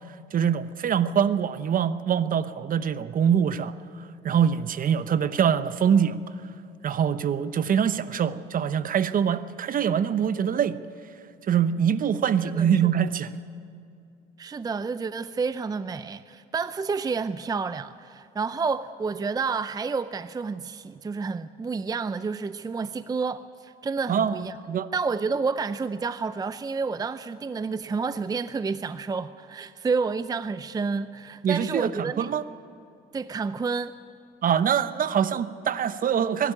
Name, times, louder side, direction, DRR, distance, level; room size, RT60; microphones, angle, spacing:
voice 1, 0.3-3.7 4.2-6.2 6.8-10.8 11.5-13.3 24.1-24.9 31.4-32.4 34.4-36.5, right 8 dB, 45° right, 0.9 m, -24 dB
voice 2, 12.4-12.9 14.4-24.6 24.9-32.3 33.1-34.0, right 4 dB, 20° right, 0.5 m, -30 dB
22.0 x 12.5 x 10.0 m
supercardioid pair, 85°, 19 cm